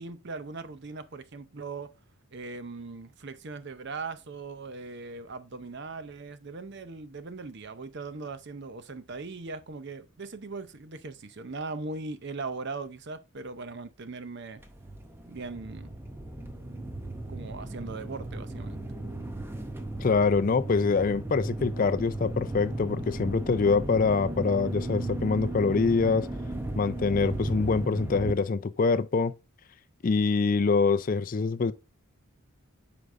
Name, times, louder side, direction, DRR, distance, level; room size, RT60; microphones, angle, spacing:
voice 1, 0.0-1.9 2.3-14.6 15.3-16.0 17.3-18.8, right 3 dB, 50° right, 0.6 m, -39 dB
sound 1, 14.6-28.3, right 1 dB, 10° right, 0.7 m, -35 dB
voice 2, 20.0-26.3 26.8-29.3 30.0-31.7, left 4 dB, 40° left, 0.4 m, -25 dB
8.1 x 5.1 x 2.5 m
head